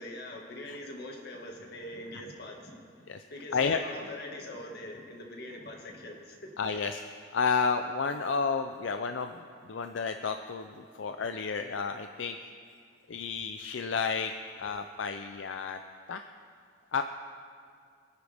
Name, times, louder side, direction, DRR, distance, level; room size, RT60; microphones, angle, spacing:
voice 1, 0.0-2.8 3.3-6.8, left 1 dB, 60° left, 1 dB, 1.9 m, -43 dB
voice 2, 6.6-7.0 7.3-9.3 9.7-12.4 13.1-14.3 14.6-15.8 16.1-16.3 16.9-17.0, left 5 dB, 85° left, 7 dB, 0.5 m, -31 dB
24.5 x 10.0 x 3.5 m, 2.2 s
head